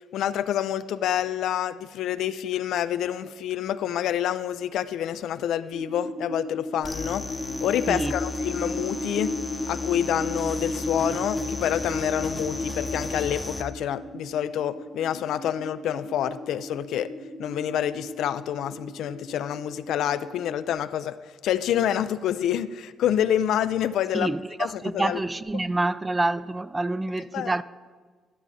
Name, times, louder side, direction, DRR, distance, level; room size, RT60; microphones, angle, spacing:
voice 1, 0.1-7.2 7.6-9.3 9.7-17.1 17.4-21.2 21.4-24.3 24.6-25.2 27.3-27.5, left 10 dB, 80° left, 0.3 m, -27 dB
sound 1, 5.7-20.7, left 1 dB, ahead, 1.0 m, -35 dB
sound 2, 6.8-13.6, left 2 dB, 20° left, 0.7 m, -35 dB
voice 2, 24.1-27.6, right 2 dB, 20° right, 0.3 m, -27 dB
12.0 x 7.2 x 4.1 m
cardioid pair, 90°, 0 cm